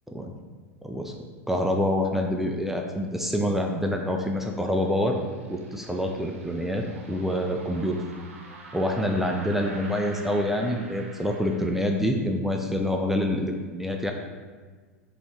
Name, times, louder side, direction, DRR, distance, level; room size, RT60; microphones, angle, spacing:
voice 1, 0.8-1.2 1.5-5.2 5.5-8.0 8.7-14.1, left 1 dB, 5° right, 2 dB, 0.3 m, -26 dB
sound 1, 4.0-11.8, right 3 dB, 60° right, 0.8 m, -46 dB
5.1 x 3.0 x 3.4 m, 1.4 s
figure-of-eight pair, 90°, 8 cm